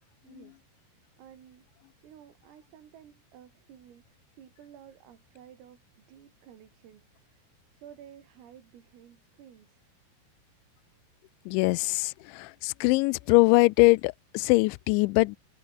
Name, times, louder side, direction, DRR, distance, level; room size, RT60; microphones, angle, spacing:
voice 1, 0.2-0.6 1.2-1.7 2.0-7.4 7.7-9.9, right 9 dB, 85° right, 5.9 m, -53 dB
voice 2, 11.5-15.4, left 25 dB, 85° left, 2.7 m, -22 dB
omnidirectional pair, 5.8 m